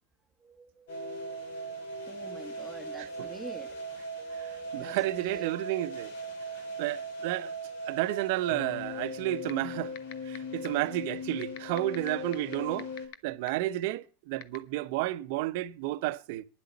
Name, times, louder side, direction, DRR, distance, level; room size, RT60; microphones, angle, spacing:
voice 1, 0.4-3.9 4.2-5.6, right 3 dB, 5° right, 1.5 m, -47 dB
sound 1, 0.9-13.1, equal, 80° left, 4.4 m, -39 dB
voice 2, 4.3-6.1 6.8-7.5 7.8-9.9 10.3-12.9 13.2-16.4, right 16 dB, 65° right, 0.9 m, -31 dB
sound 2, 9.5-9.6 10.0-10.4 10.6-10.7 11.4-13.1 13.5-13.6 14.4-14.6, left 12 dB, 60° left, 1.1 m, -40 dB
10.5 x 7.8 x 7.1 m
supercardioid pair, 120°, 0 cm